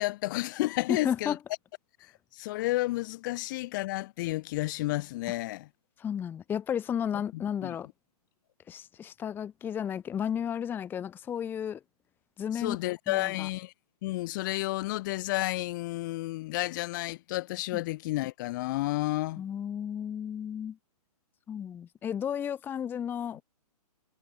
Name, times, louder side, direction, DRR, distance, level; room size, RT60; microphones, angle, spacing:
voice 1, 0.0-1.4 2.3-5.7 7.3-7.8 12.5-13.7 14.0-19.4, left 19 dB, 30° left, 1.2 m, -31 dB
voice 2, 1.0-1.4 6.0-7.9 8.7-11.8 12.4-12.8 13.1-13.5 17.7-17.8 19.4-20.8 21.5-23.4, left 8 dB, 10° left, 1.1 m, -33 dB
hypercardioid pair, 155°, 20 cm